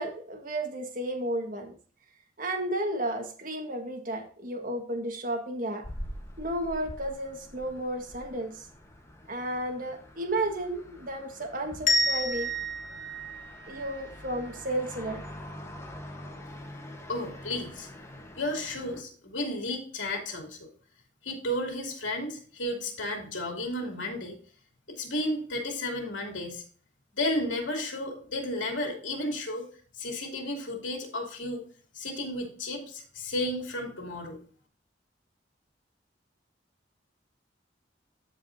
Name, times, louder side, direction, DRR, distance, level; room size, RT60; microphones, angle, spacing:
voice 1, 0.0-1.7 2.4-5.8 6.4-8.7 9.3-12.5 13.7-15.2, right 1 dB, 50° right, 4 dB, 1.5 m, -33 dB
sound 1, 5.8-19.0, left 1 dB, 15° left, 1.1 m, -45 dB
sound 2, 11.9-14.6, left 1 dB, 45° left, 1.5 m, -30 dB
voice 2, 17.1-17.9 18.4-20.7 21.2-24.4 24.9-26.6 27.2-29.7 30.0-31.6 31.9-34.4, left 1 dB, 90° left, 2 dB, 2.8 m, -33 dB
14.0 x 4.9 x 2.6 m, 0.43 s
head